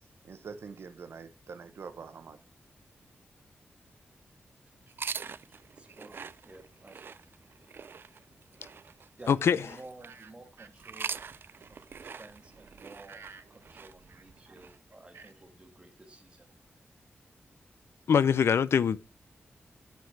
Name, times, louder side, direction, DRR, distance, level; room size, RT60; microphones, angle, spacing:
voice 1, 0.2-2.4 10.0-10.3 10.6-10.7 11.1-11.4 13.1-13.4 14.1-14.5 15.1-15.3, right 5 dB, 75° right, 0.9 m, -46 dB
sound 1, 4.9-10.2 10.8-14.8, right 6 dB, 60° right, 0.4 m, -43 dB
voice 2, 5.8-7.2 9.2-11.2 11.7-13.2 13.5-16.5, right 2 dB, 25° right, 1.7 m, -52 dB
voice 3, 9.3-9.6 18.1-19.0, left 7 dB, 85° left, 0.4 m, -23 dB
9.4 x 4.6 x 4.6 m
wide cardioid pair, 105°, 4 cm